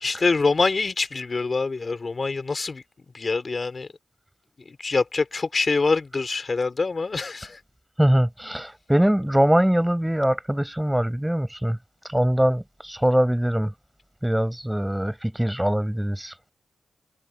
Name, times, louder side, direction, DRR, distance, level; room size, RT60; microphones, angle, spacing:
voice 1, 0.0-2.8 3.1-3.9 4.6-7.6, left 3 dB, 45° left, 2.9 m, -25 dB
voice 2, 8.0-11.8 12.1-13.7 14.2-16.3, equal, 5° right, 5.4 m, -22 dB
cardioid pair, 60°, 0 cm